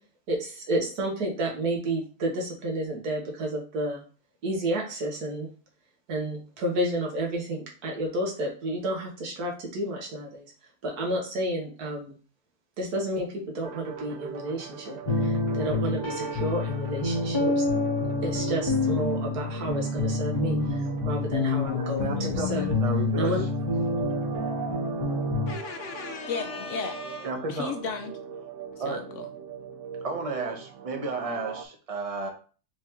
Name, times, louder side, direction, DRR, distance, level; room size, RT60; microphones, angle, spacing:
voice 1, 0.3-4.0 4.4-5.5 6.1-10.4 10.8-12.1 12.8-13.3 13.6-17.6 18.2-20.6 21.1-22.1 22.5-22.6 23.2-23.4, right 1 dB, 90° right, 0 dB, 1.7 m, -30 dB
sound 1, 13.6-31.6, right 7 dB, 65° right, 0.8 m, -41 dB
sound 2, 15.0-25.5, left 2 dB, 25° left, 0.7 m, -27 dB
voice 2, 21.7-23.5 27.2-27.7 28.8-29.0 30.0-32.3, right 3 dB, 35° right, 4 dB, 0.6 m, -33 dB
voice 3, 25.5-28.1 28.9-29.3, left 5 dB, 70° left, 6 dB, 0.8 m, -35 dB
4.4 x 3.5 x 2.9 m, 0.39 s
omnidirectional pair, 1.6 m